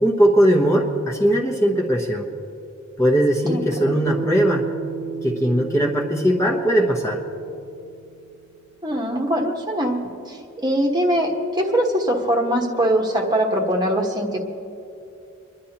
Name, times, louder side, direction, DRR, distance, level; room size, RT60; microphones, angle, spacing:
voice 1, 0.0-2.3 3.0-4.6 5.1-7.2, equal, 15° left, -1 dB, 1.1 m, -19 dB
voice 2, 3.5-3.9 8.8-14.4, right 1 dB, 20° right, 0 dB, 1.3 m, -22 dB
Bass guitar, 4.1-8.5, right 5 dB, 50° right, 0.6 m, -34 dB
29.5 x 11.0 x 2.9 m, 2.6 s
head